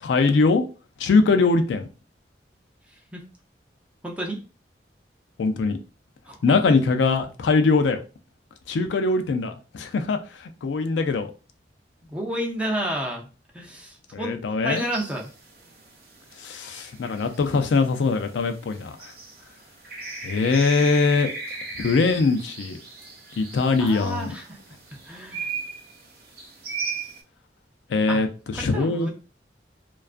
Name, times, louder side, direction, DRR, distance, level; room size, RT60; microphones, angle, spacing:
voice 1, 0.0-0.6 1.0-1.8 5.4-5.8 6.4-8.0 8.7-11.3 14.1-14.8 16.4-19.1 20.2-21.3 21.8-22.8 23.4-24.3 27.9-29.1, left 4 dB, 85° left, 0.4 m, -22 dB
voice 2, 4.0-4.4 6.3-6.8 12.0-13.3 13.5-15.3 23.8-24.6 25.0-25.5 28.1-28.2 28.5-29.1, right 1 dB, 5° right, 0.4 m, -31 dB
sound 1, 14.7-27.2, right 4 dB, 55° right, 0.6 m, -38 dB
2.3 x 2.2 x 2.4 m
head